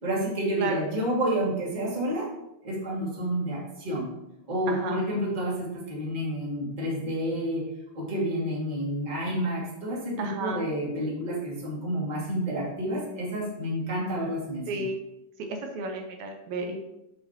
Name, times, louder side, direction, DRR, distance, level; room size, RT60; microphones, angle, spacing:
voice 1, 0.0-2.3 2.6-4.1 4.5-7.7 7.9-14.8, equal, 15° right, -5 dB, 1.7 m, -29 dB
voice 2, 4.7-5.0 10.2-10.6 14.7-15.0 15.4-16.8, right 2 dB, 80° right, 3 dB, 2.1 m, -32 dB
7.9 x 6.4 x 2.9 m, 0.88 s
omnidirectional pair, 3.3 m